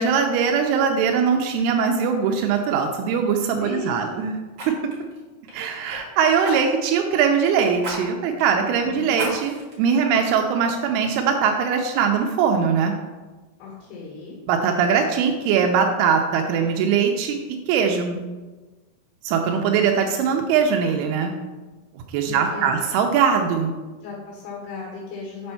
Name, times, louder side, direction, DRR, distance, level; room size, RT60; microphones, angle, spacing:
voice 1, 0.0-4.4 4.7-4.8 5.5-12.9 14.5-17.4 17.7-18.2 19.2-21.3 22.1-23.7, right 6 dB, 90° right, 3 dB, 2.5 m, -21 dB
Fire, 2.4-2.6 4.5-6.0 6.4-7.0 7.8-8.0 8.4-8.5 9.1-9.7 10.3-10.4, right 1 dB, 45° right, 2.4 m, -34 dB
voice 2, 3.6-4.0 8.8-9.1 13.6-14.4 22.3-22.8 24.0-25.5, left 3 dB, 90° left, -4 dB, 3.4 m, -35 dB
6.8 x 4.3 x 5.5 m, 1.3 s
omnidirectional pair, 4.4 m